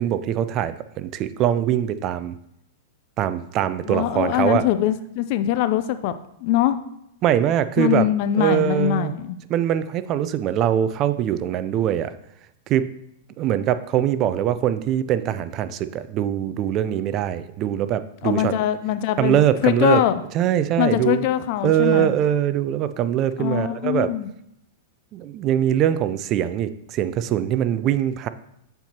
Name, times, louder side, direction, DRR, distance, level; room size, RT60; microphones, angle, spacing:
voice 1, 0.0-2.3 3.2-4.6 7.2-8.1 8.4-9.1 9.5-12.1 12.7-12.9 13.4-18.5 19.2-20.0 20.3-21.3 21.6-24.1 25.1-28.3, right 10 dB, 35° right, 13 dB, 0.3 m, -22 dB
voice 2, 3.8-6.1 6.4-6.8 7.8-9.4 18.2-19.4 19.6-20.2 20.8-22.1 23.4-24.3, left 12 dB, 50° left, 11 dB, 0.4 m, -22 dB
7.6 x 4.4 x 2.9 m, 0.77 s
hypercardioid pair, 125°, 0 cm